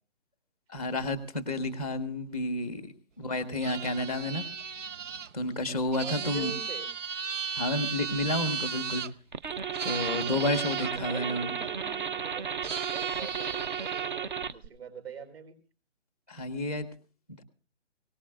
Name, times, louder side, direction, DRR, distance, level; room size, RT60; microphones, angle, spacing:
voice 1, 0.7-4.4 5.3-6.5 7.5-9.0 9.8-11.5 16.3-16.9, left 1 dB, 5° right, 9 dB, 0.7 m, -31 dB
sound 1, 3.6-9.1 9.7-10.9 12.6-14.1, right 6 dB, 85° right, 0.8 m, -36 dB
voice 2, 6.0-6.9 10.2-15.5, right 7 dB, 55° right, 7 dB, 4.4 m, -44 dB
sound 2, 9.3-14.7, right 7 dB, 40° right, 0.7 m, -34 dB
22.5 x 18.5 x 2.4 m, 0.34 s
hypercardioid pair, 160°, 36 cm